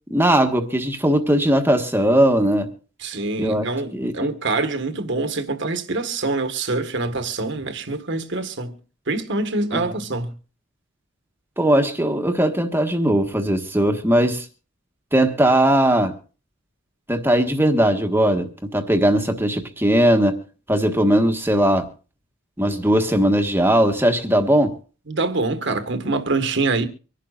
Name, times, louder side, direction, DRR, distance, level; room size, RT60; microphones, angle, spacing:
voice 1, 0.1-2.7 3.4-3.6 3.9-4.1 9.7-9.9 11.6-14.4 15.1-16.2 17.1-20.4 20.7-21.9 22.6-24.7, right 1 dB, 10° right, 1.4 m, -19 dB
voice 2, 3.0-8.8 9.1-10.4 25.1-26.9, right 3 dB, 60° right, 1.6 m, -25 dB
25.0 x 11.5 x 2.5 m
head